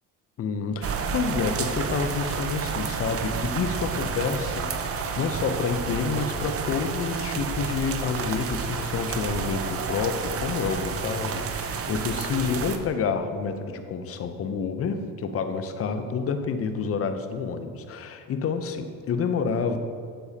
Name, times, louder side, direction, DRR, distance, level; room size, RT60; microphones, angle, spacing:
voice 1, 0.4-19.8, left 5 dB, 35° left, 8 dB, 0.7 m, -28 dB
sound 1, 0.8-12.8, right 5 dB, 35° right, 0.7 m, -30 dB
8.3 x 6.9 x 2.8 m, 2.3 s
supercardioid pair, 90°, 38 cm